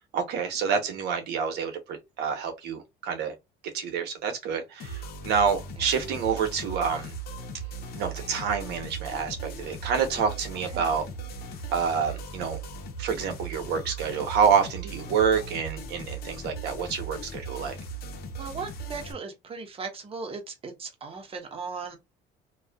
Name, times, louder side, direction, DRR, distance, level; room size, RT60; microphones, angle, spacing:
voice 1, 0.1-3.3 3.7-7.1 7.9-11.1 11.7-12.6 13.0-17.8, right 6 dB, 80° right, 0.9 m, -27 dB
sound 1, 4.8-19.1, right 3 dB, 65° left, 0.8 m, -38 dB
voice 2, 18.4-22.0, right 4 dB, 35° right, 0.9 m, -38 dB
2.6 x 2.3 x 2.3 m
cardioid pair, 110°, 17 cm